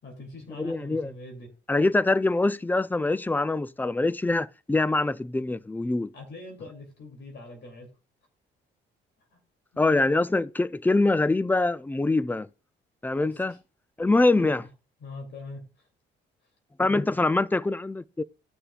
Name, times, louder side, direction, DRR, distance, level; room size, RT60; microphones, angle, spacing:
voice 1, 0.0-1.5 6.1-7.9 9.3-9.4 9.7-10.1 13.3-13.6 14.4-14.7 15.0-15.9, left 2 dB, 60° left, 2.9 m, -43 dB
voice 2, 0.6-1.1 1.7-6.1 9.8-12.5 13.0-13.5 14.0-14.6 16.8-18.2, left 2 dB, 10° left, 0.4 m, -24 dB
18.0 x 6.7 x 2.4 m
cardioid pair, 90°, 20 cm